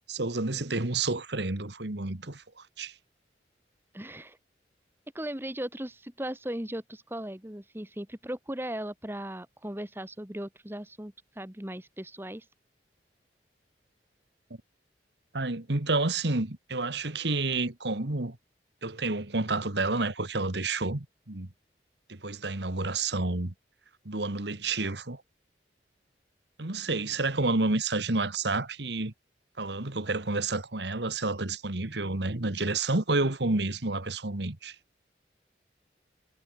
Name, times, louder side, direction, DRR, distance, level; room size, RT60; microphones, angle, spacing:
voice 1, 0.1-2.9 15.3-18.4 18.8-21.5 22.1-23.5 24.0-25.2 26.6-29.1 29.6-34.7, right 3 dB, 70° right, 1.8 m, -30 dB
voice 2, 3.9-4.4 5.1-12.4, right 1 dB, 10° right, 1.4 m, -37 dB
head